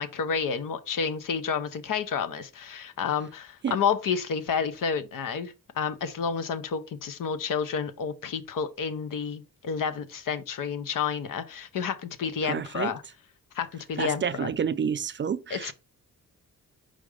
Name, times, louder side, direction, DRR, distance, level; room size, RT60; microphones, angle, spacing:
voice 1, 0.0-13.0 13.5-14.5 15.5-15.7, left 6 dB, 75° left, 0.8 m, -30 dB
voice 2, 12.4-12.9 14.0-15.7, right 7 dB, 35° right, 0.4 m, -29 dB
5.1 x 3.9 x 4.8 m
wide cardioid pair, 120°, 33 cm